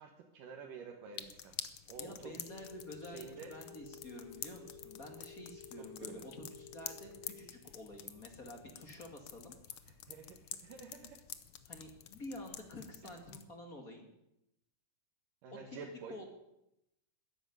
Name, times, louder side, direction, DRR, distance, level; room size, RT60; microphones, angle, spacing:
voice 1, 0.0-1.6 1.9-2.5 3.0-3.5 5.8-6.3 9.9-11.2 15.4-16.2, right 5 dB, 80° right, 2 dB, 3.0 m, -50 dB
sound 1, 1.2-13.5, left 10 dB, 80° left, 1.2 m, -49 dB
voice 2, 2.0-3.2 3.5-9.5 11.7-14.1 15.7-15.8 16.1-16.2, left 1 dB, 30° left, 3 dB, 1.9 m, -49 dB
Telephone, 2.4-7.4, left 6 dB, 55° left, 3.7 m, -53 dB
13.5 x 11.0 x 9.4 m, 0.84 s
omnidirectional pair, 3.8 m